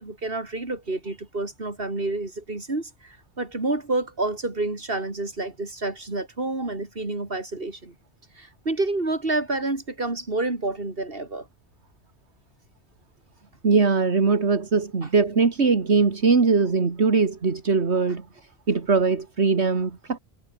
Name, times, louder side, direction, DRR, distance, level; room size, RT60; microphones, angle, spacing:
voice 1, 0.0-7.9 8.4-11.5 15.0-15.1, right 2 dB, 55° right, 3.9 m, -29 dB
voice 2, 13.6-18.3 18.7-20.2, right 4 dB, 75° right, 2.3 m, -21 dB
omnidirectional pair, 1.1 m